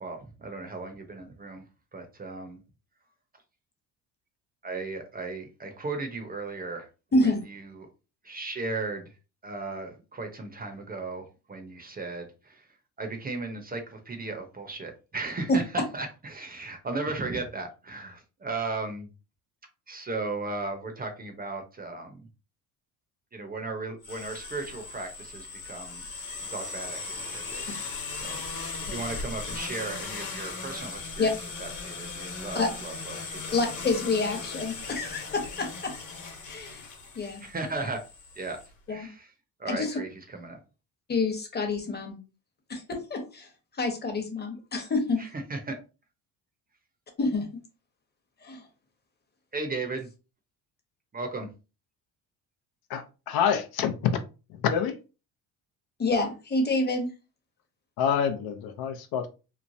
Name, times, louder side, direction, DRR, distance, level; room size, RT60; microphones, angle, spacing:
voice 1, 0.0-1.6 1.9-2.6 4.6-6.9 7.2-7.9 8.2-9.0 9.4-12.6 13.0-19.1 19.9-22.3 23.3-26.0 26.5-27.8 28.1-31.3 31.6-33.5 37.4-38.0 38.4-38.6 38.9-39.3 39.6-40.6 45.2-45.8 49.5-50.1 51.1-51.5, right 3 dB, 25° right, 5 dB, 0.6 m, -36 dB
voice 2, 7.1-7.4 15.5-15.8 28.9-29.0 31.2-31.3 32.5-32.7 33.5-35.9 36.4-36.9 37.1-37.4 38.9-39.1 39.7-40.0 41.1-42.2 42.7-43.5 43.7-45.2 47.2-47.5 48.4-48.6 56.0-57.1, left 2 dB, 25° left, 3 dB, 0.9 m, -27 dB
sound 1, 24.0-38.7, left 4 dB, 50° left, 1.2 m, -38 dB
voice 3, 52.9-54.1 54.6-55.0 58.0-59.3, left 8 dB, 70° left, 7 dB, 0.6 m, -27 dB
3.1 x 2.1 x 2.6 m, 0.31 s
cardioid pair, 90°, 39 cm